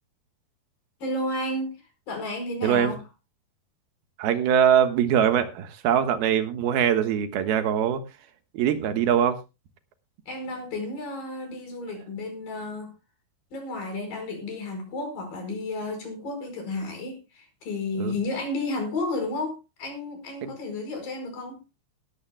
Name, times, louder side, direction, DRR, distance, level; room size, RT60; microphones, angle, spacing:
voice 1, 1.0-1.8 2.1-3.0 10.3-12.9 13.5-21.6, left 2 dB, 65° left, 6.5 m, -32 dB
voice 2, 2.6-2.9 4.2-8.0 8.5-9.4 18.0-18.2 20.4-20.5, right 9 dB, 80° right, 3.3 m, -22 dB
18.5 x 13.5 x 2.2 m
omnidirectional pair, 4.4 m